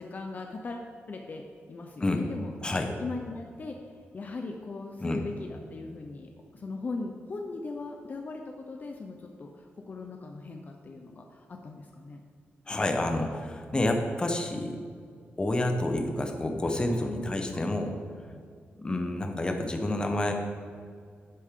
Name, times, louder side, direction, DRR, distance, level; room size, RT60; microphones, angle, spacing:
voice 1, 0.0-2.5 3.0-3.8 4.1-12.2, left 3 dB, 45° left, 2 dB, 0.8 m, -39 dB
voice 2, 2.6-2.9 5.0-5.2 12.7-14.8 15.4-17.9 18.8-20.3, left 1 dB, 20° left, 4 dB, 1.0 m, -29 dB
11.0 x 8.5 x 3.7 m, 2.2 s
wide cardioid pair, 130°, 4 cm